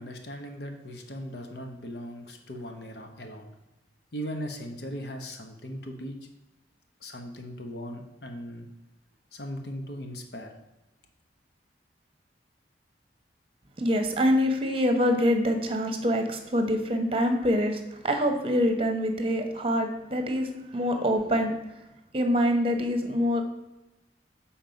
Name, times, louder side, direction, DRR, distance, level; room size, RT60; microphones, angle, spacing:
voice 1, 0.0-3.5 4.1-6.2 7.0-8.7 9.3-10.5, equal, 65° left, 4 dB, 1.1 m, -38 dB
voice 2, 13.8-21.6 22.1-23.4, equal, 30° right, 5 dB, 1.0 m, -25 dB
7.4 x 4.4 x 5.2 m, 0.98 s
head